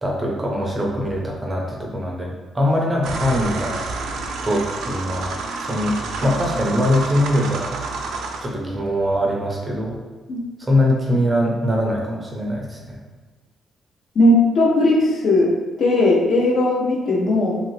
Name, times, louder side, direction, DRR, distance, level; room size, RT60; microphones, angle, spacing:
voice 1, 0.0-3.8 4.4-5.3 5.7-5.9 6.2-7.7 8.4-10.0 10.6-13.0, left 1 dB, 15° right, -2 dB, 0.5 m, -22 dB
sound 1, 3.0-8.5, right 3 dB, 90° right, 0.3 m, -29 dB
voice 2, 14.2-15.5 15.8-17.6, left 2 dB, 50° left, -1 dB, 0.6 m, -17 dB
2.8 x 2.5 x 3.1 m, 1.3 s
cardioid pair, 160°, 0 cm